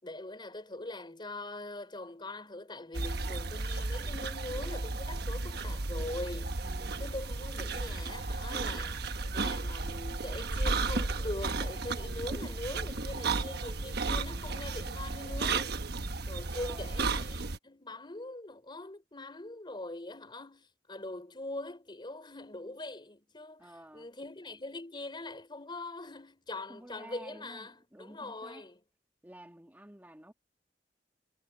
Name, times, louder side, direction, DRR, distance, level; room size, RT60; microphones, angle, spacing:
voice 1, 0.0-6.6 7.0-15.7 16.3-28.8, left 2 dB, 25° left, 3.7 m, -42 dB
sound 1, 2.9-17.6, right 3 dB, 65° right, 1.2 m, -34 dB
voice 2, 6.6-7.1 12.0-12.3 16.5-17.0 23.6-24.1 26.7-28.7 29.2-30.3, right 1 dB, 10° right, 2.0 m, -52 dB
head